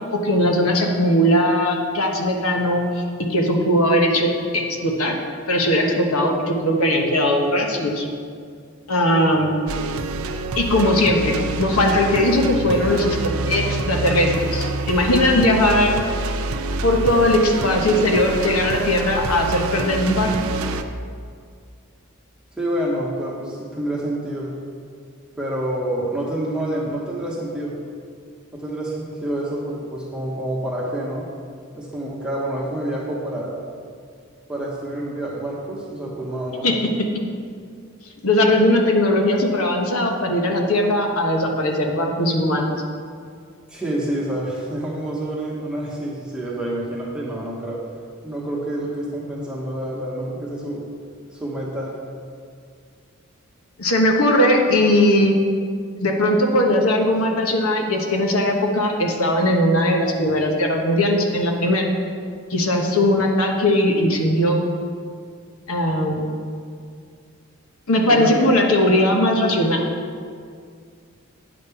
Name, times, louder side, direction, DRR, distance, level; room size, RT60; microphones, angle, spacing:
voice 1, 0.1-5.1 5.5-8.1 8.9-9.6 10.6-13.2 13.5-16.0 16.8-20.3 36.6-36.7 38.2-42.8 53.8-55.3 56.0-61.9 62.5-64.7 65.7-66.3 67.9-69.8, left 1 dB, 80° left, 1 dB, 1.2 m, -19 dB
sound 1, 9.7-20.8, right 2 dB, 75° right, 0.5 m, -27 dB
voice 2, 22.6-24.5 25.4-27.8 28.5-31.3 31.7-33.6 34.5-36.7 43.7-47.8 48.2-50.9 51.3-52.0 68.1-68.4, right 1 dB, 5° right, -5 dB, 1.0 m, -28 dB
8.9 x 5.2 x 6.9 m, 2.2 s
head